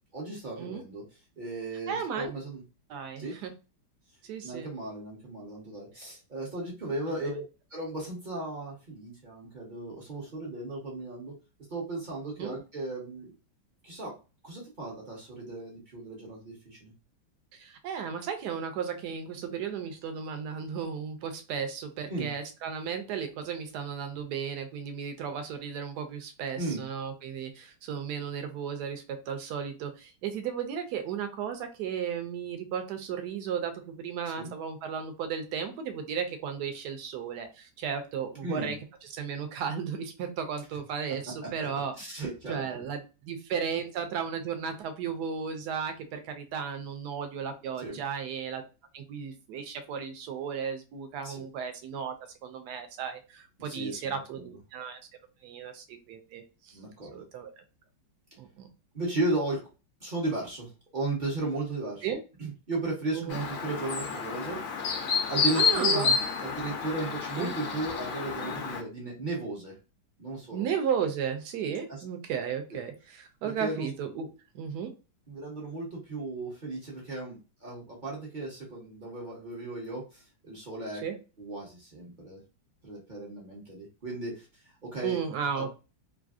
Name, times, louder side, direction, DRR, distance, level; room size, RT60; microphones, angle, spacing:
voice 1, 0.1-1.0 1.4-2.6 3.2-3.4 4.4-7.4 7.7-11.4 11.7-13.3 13.8-14.2 14.4-16.9 22.1-22.3 26.6-26.8 34.4-34.5 38.4-38.7 41.4-41.7 42.0-42.6 47.8-48.0 51.2-51.4 53.6-54.6 56.7-57.2 58.9-59.6 60.0-64.8 65.3-66.1 66.4-69.7 70.2-70.7 71.9-72.0 72.7-72.8 73.4-73.9 75.3-81.0 81.4-82.4 82.8-84.5 84.8-85.7, right 2 dB, 50° right, -3 dB, 0.5 m, -35 dB
voice 2, 1.9-2.3 2.9-3.5 4.2-4.7 12.4-12.5 17.5-38.8 39.1-41.9 42.5-48.6 48.9-52.1 52.4-55.0 55.4-56.7 57.1-57.5 58.4-58.7 62.0-62.2 63.1-63.4 65.5-66.1 67.4-67.5 70.5-74.3 74.5-74.9 81.0-81.1 85.0-85.7, right 7 dB, 75° right, 7 dB, 1.0 m, -34 dB
Chirp tweet, 63.3-68.8, left 5 dB, 85° left, 0.7 m, -29 dB
3.2 x 2.5 x 2.4 m, 0.31 s
omnidirectional pair, 2.2 m